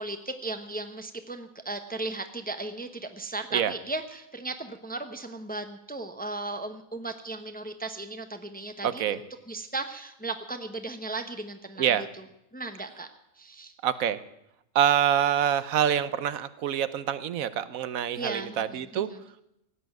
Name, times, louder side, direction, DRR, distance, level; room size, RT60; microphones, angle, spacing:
voice 1, 0.0-12.1 12.5-13.1 13.4-13.7 18.2-19.2, right 2 dB, 10° left, 7 dB, 0.7 m, -36 dB
voice 2, 8.8-9.2 11.8-12.1 13.8-14.2 14.7-19.1, right 9 dB, 80° right, 14 dB, 1.2 m, -26 dB
17.0 x 8.6 x 9.1 m, 0.83 s
omnidirectional pair, 1.4 m